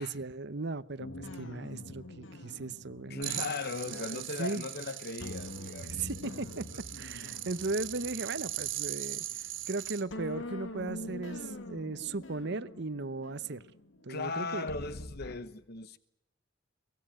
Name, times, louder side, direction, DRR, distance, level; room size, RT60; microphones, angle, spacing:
voice 1, 0.0-3.5 3.9-4.6 5.8-9.2 9.7-13.6 14.0-14.7, right 3 dB, 60° right, 0.9 m, -37 dB
sound 1, 1.0-4.7 5.2-9.7 10.1-15.4, left 1 dB, 75° left, 2.0 m, -45 dB
voice 2, 3.1-6.0 14.1-16.0, left 3 dB, 55° left, 1.0 m, -38 dB
sound 2, 3.2-10.0, right 13 dB, 80° right, 2.4 m, -40 dB
23.5 x 19.5 x 9.0 m
head